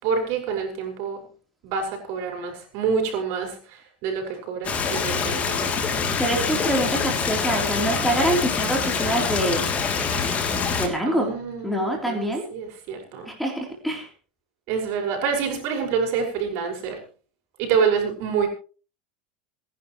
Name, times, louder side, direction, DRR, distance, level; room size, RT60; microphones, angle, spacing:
voice 1, 0.0-1.2 1.6-5.8 11.1-13.3 14.7-17.0 17.6-18.5, right 6 dB, 55° right, 3 dB, 5.7 m, -27 dB
Stream, 4.6-10.9, left 5 dB, 25° left, 2.9 m, -25 dB
voice 2, 6.2-9.7 10.8-11.3 11.6-12.4 13.3-14.1, right 1 dB, ahead, 1 dB, 3.4 m, -25 dB
28.0 x 11.0 x 3.1 m, 0.38 s
supercardioid pair, 135°, 5 cm